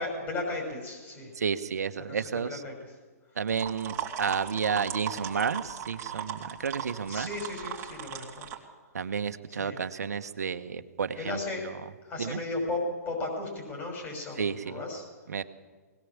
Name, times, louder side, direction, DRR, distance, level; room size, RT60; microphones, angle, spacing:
voice 1, 0.0-1.3 2.1-3.0 7.1-8.5 9.5-9.8 11.2-11.7 12.0-15.0, left 2 dB, 25° left, -1 dB, 6.0 m, -35 dB
voice 2, 1.4-2.6 3.4-7.3 8.9-11.4 12.2-12.4 14.4-14.8 15.3-15.4, right 6 dB, 80° right, 9 dB, 1.3 m, -31 dB
sound 1, 3.5-8.6, right 9 dB, 30° right, 3.3 m, -37 dB
21.0 x 19.0 x 7.4 m, 1.4 s
hypercardioid pair, 135°, 9 cm